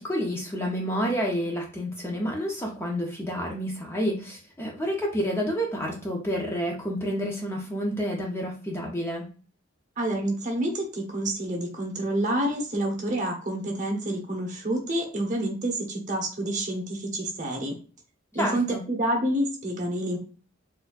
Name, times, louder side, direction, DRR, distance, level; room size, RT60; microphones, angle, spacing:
voice 1, 0.0-9.3 18.4-18.8, equal, 10° left, -1 dB, 0.5 m, -29 dB
voice 2, 10.0-17.7 18.3-20.2, right 1 dB, 40° right, 1 dB, 0.9 m, -28 dB
4.2 x 2.6 x 2.3 m, 0.38 s
head